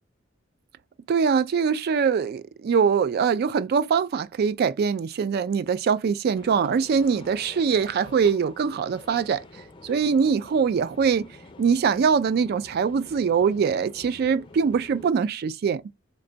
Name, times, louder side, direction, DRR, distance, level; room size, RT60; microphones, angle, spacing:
voice 1, 1.1-9.4 9.8-11.3 11.6-15.8, right 6 dB, 50° right, 0.3 m, -23 dB
sound 1, 6.3-15.1, left 2 dB, 25° left, 0.4 m, -47 dB
3.2 x 2.6 x 3.8 m
head